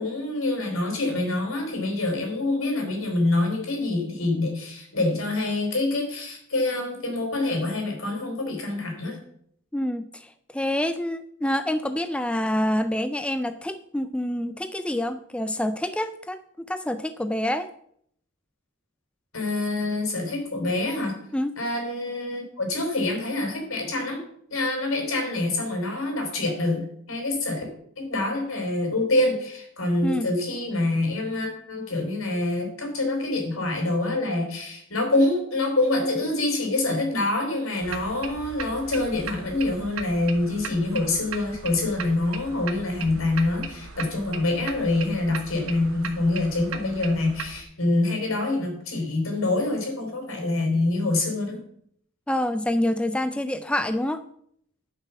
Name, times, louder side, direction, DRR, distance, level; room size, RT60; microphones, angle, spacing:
voice 1, 0.0-9.2 19.3-21.1 21.6-24.2 24.5-27.6 28.0-51.6, left 2 dB, 80° left, 2 dB, 3.9 m, -26 dB
voice 2, 9.7-17.7 21.3-21.5 30.0-30.3 52.3-54.2, left 1 dB, 5° left, 11 dB, 0.3 m, -27 dB
sound 1, 37.8-47.6, right 5 dB, 85° right, 1.2 m, -38 dB
10.5 x 5.8 x 7.0 m, 0.67 s
head